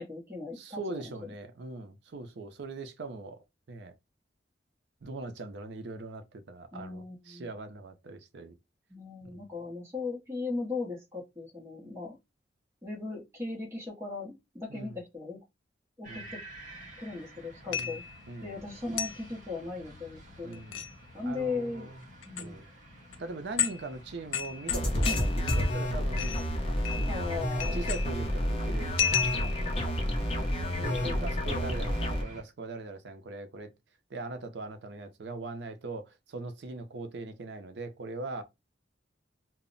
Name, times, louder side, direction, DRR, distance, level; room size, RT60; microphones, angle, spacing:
voice 1, 0.0-1.1 6.7-7.5 8.9-12.2 12.8-15.4 16.0-16.4 17.0-18.0 18.4-20.6 21.1-21.9 22.3-22.5 27.0-27.9 30.5-31.3, left 3 dB, 15° right, 0.8 m, -38 dB
voice 2, 0.6-3.9 5.0-8.5 9.2-9.4 14.7-15.0 16.1-16.3 17.7-18.0 18.3-18.6 20.4-20.9 21.2-22.0 22.4-22.6 23.2-27.1 27.7-29.9 30.8-33.7 34.1-38.4, right 3 dB, 65° right, 0.5 m, -41 dB
sound 1, 16.0-32.4, equal, 45° right, 0.9 m, -49 dB
sound 2, 17.7-18.2 19.0-19.2 20.5-20.9 22.2-22.4 23.1-23.2 23.6-23.9 24.3-25.9 26.2-26.5 26.9-27.3 27.6-28.3 29.0-29.7, left 8 dB, 85° left, 0.4 m, -32 dB
sound 3, 24.7-32.2, equal, 30° left, 0.5 m, -30 dB
2.0 x 2.0 x 3.7 m
head